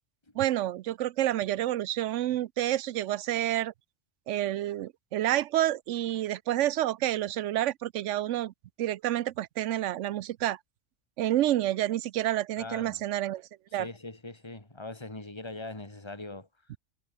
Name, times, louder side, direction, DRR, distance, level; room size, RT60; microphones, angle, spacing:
voice 1, 0.4-3.7 4.3-8.5 8.8-10.6 11.2-13.4 13.7-13.9, right 13 dB, 90° right, 0.9 m, -29 dB
voice 2, 12.6-13.0 13.7-16.5, left 2 dB, 20° left, 2.9 m, -41 dB
omnidirectional pair, 1.2 m